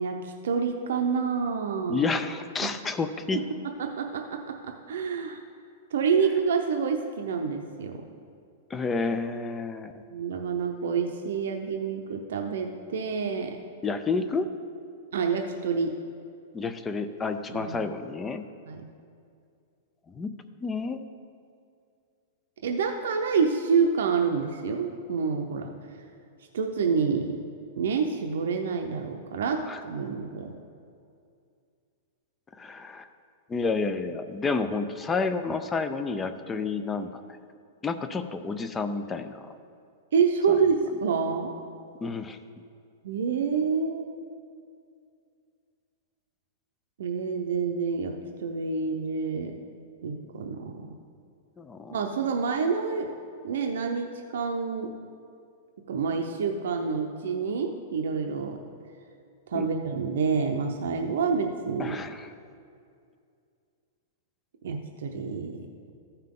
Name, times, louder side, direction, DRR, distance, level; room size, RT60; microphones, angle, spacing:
voice 1, 0.0-2.1 2.6-2.7 3.3-3.4 3.8-5.4 5.9-8.0 10.1-13.6 15.1-16.0 17.5-17.8 18.6-18.9 22.6-25.7 26.5-27.3 27.8-30.5 40.1-41.5 43.0-44.2 47.0-49.5 50.0-50.9 51.9-53.1 53.4-54.9 55.9-58.6 59.5-62.0 64.6-65.9, right 5 dB, 75° right, 4 dB, 0.7 m, -28 dB
voice 2, 1.9-3.4 8.7-9.9 13.8-14.5 16.5-18.5 20.1-20.3 20.6-21.0 29.7-29.8 32.6-33.1 33.5-37.2 37.8-39.5 40.5-40.6 42.0-42.4 51.6-52.0 59.5-59.7 61.8-62.3, left 4 dB, 10° left, 9 dB, 0.4 m, -30 dB
14.0 x 5.7 x 3.7 m, 2.4 s
supercardioid pair, 170°, 0 cm